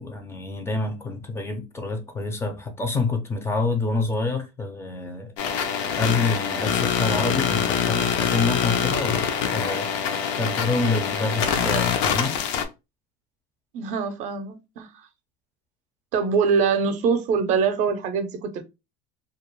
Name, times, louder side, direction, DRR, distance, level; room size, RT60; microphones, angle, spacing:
voice 1, 0.0-5.3 6.0-12.4, left 3 dB, 15° left, 0.4 m, -27 dB
sound 1, 5.4-12.7, left 7 dB, 75° left, 0.5 m, -24 dB
voice 2, 13.7-14.9 16.1-18.6, right 5 dB, 50° right, 0.5 m, -23 dB
2.3 x 2.0 x 2.9 m
supercardioid pair, 130°, 16 cm